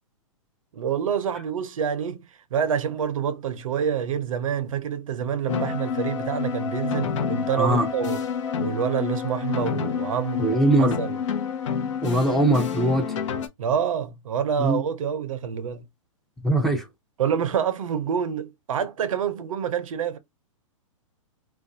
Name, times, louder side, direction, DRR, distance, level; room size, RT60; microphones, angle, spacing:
voice 1, 0.7-8.2 8.6-11.2 13.6-15.9 17.2-20.2, right 8 dB, 75° right, 0.6 m, -27 dB
sound 1, 5.5-13.5, left 7 dB, 65° left, 0.6 m, -28 dB
voice 2, 7.6-7.9 10.4-11.0 12.0-13.1 14.6-14.8 16.4-16.9, right 1 dB, ahead, 0.5 m, -21 dB
2.4 x 2.2 x 2.5 m
hypercardioid pair, 125°, 17 cm